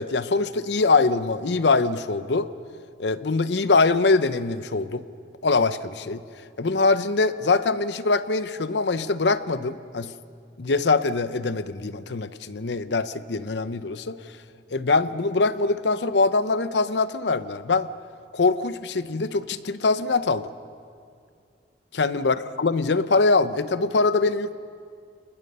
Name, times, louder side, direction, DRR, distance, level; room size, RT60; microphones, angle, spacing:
voice 1, 0.0-2.5 3.0-5.0 5.4-6.2 6.6-10.1 10.6-14.2 14.7-17.9 18.3-20.5 22.0-24.6, left 3 dB, 70° left, 14 dB, 0.7 m, -23 dB
28.5 x 20.5 x 5.5 m, 2.3 s
head